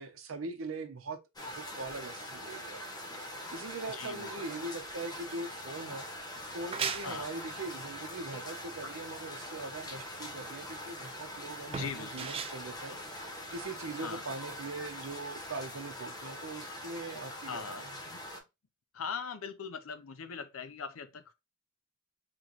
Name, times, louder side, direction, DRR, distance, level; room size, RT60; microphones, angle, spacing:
voice 1, 0.0-6.0 6.4-18.0, right 3 dB, 70° right, 0.7 m, -42 dB
sound 1, 1.4-18.4, left 1 dB, 20° left, 0.9 m, -43 dB
voice 2, 4.0-4.3 7.0-7.3 11.7-12.3 14.0-14.2 17.5-17.8 18.1-18.2 18.9-21.4, left 6 dB, 75° left, 0.6 m, -40 dB
sound 2, 6.4-13.8, right 6 dB, 25° right, 0.3 m, -41 dB
3.0 x 3.0 x 3.8 m
head